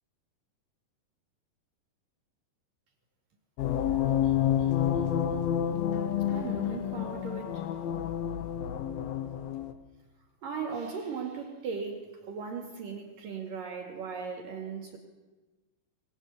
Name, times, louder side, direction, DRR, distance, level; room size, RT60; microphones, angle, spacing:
sound 1, 3.6-9.7, left 10 dB, 75° left, 3.0 m, -29 dB
voice 1, 6.3-7.7 10.4-15.0, right 5 dB, 65° right, 3 dB, 3.8 m, -37 dB
23.0 x 21.5 x 8.5 m, 1.2 s
omnidirectional pair, 4.4 m